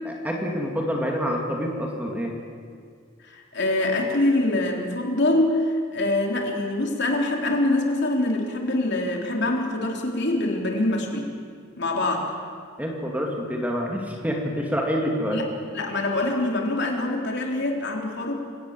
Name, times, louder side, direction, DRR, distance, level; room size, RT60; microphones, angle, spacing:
voice 1, 0.1-2.4 12.8-15.4, equal, 5° right, 0 dB, 2.5 m, -27 dB
voice 2, 3.2-11.3 11.8-12.3 15.3-15.5 15.7-18.3, left 2 dB, 50° left, 1 dB, 3.5 m, -24 dB
28.5 x 17.5 x 7.6 m, 2.1 s
head